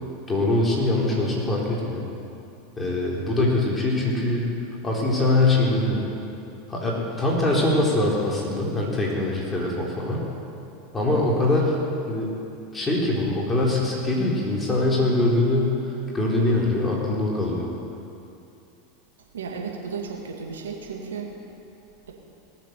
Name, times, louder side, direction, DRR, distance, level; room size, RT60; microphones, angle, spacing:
voice 1, 0.3-2.0 2.8-4.4 4.8-6.0 6.7-10.2 10.9-12.4 12.7-15.8 16.1-17.6, left 2 dB, 15° left, -4 dB, 3.7 m, -23 dB
voice 2, 19.3-21.3, right 5 dB, 75° right, 0 dB, 2.1 m, -34 dB
18.5 x 7.5 x 6.8 m, 2.7 s
hypercardioid pair, 85°, 0 cm